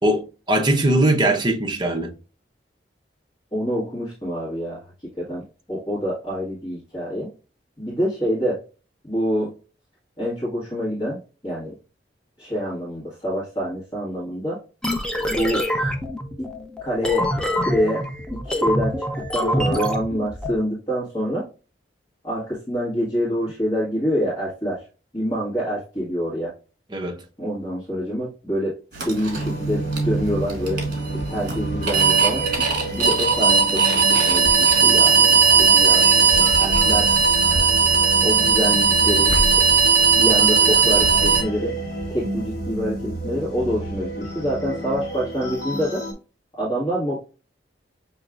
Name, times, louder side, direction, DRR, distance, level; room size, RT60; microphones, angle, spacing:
voice 1, 0.0-2.1 26.9-27.2, right 1 dB, 25° right, 0.8 m, -20 dB
voice 2, 3.5-4.8 5.2-5.4 5.7-7.3 7.8-8.6 9.0-9.5 10.2-11.7 12.4-14.6 15.3-15.7 16.4-16.5 16.8-17.3 17.6-18.0 18.3-19.0 19.3-21.5 22.2-24.8 25.1-26.5 27.4-30.8 31.3-32.4 33.0-33.8 34.1-37.1 38.2-39.3 40.1-41.7 42.1-46.0 46.6-47.2, equal, 25° left, 1.8 m, -26 dB
sound 1, 14.8-20.5, equal, 5° left, 0.6 m, -25 dB
sound 2, 28.9-41.4, right 5 dB, 50° right, 1.7 m, -18 dB
sound 3, 29.3-46.1, right 1 dB, 55° left, 2.0 m, -30 dB
6.4 x 3.1 x 2.4 m
head